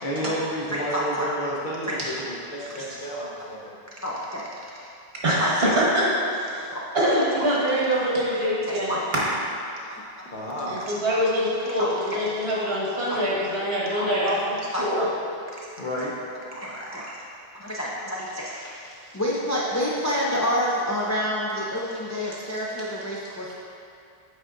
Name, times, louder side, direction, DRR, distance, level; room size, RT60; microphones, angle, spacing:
voice 1, 0.0-3.8 10.3-10.8 15.0-15.1 15.8-16.2, equal, 55° left, -4 dB, 0.9 m, -31 dB
voice 2, 0.7-1.3 1.8-2.0 3.1-3.2 4.0-4.4 5.4-5.5 6.6-6.8 8.9-9.0 9.9-10.0 11.8-12.2 13.1-13.2 14.0-14.1 14.7-14.8 16.5-17.1 17.6-18.5 19.1-23.5, equal, 25° left, -5 dB, 0.4 m, -28 dB
voice 3, 5.2-6.7 6.9-9.2 10.7-15.1, equal, 70° right, -7 dB, 1.6 m, -24 dB
8.0 x 4.8 x 2.5 m, 2.5 s
omnidirectional pair, 1.0 m